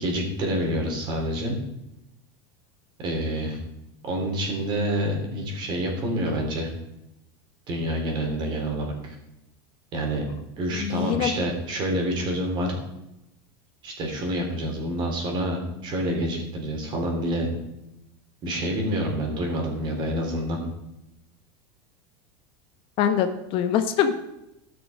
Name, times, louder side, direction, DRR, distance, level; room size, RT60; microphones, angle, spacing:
voice 1, 0.0-1.6 3.0-3.6 4.0-6.7 7.7-9.2 9.9-10.2 10.6-12.7 13.8-17.5 18.4-20.6, equal, 35° right, 1 dB, 3.5 m, -27 dB
voice 2, 10.8-11.3 23.0-24.1, left 9 dB, 40° left, 8 dB, 0.9 m, -23 dB
15.5 x 6.3 x 5.2 m, 0.87 s
supercardioid pair, 145°, 13 cm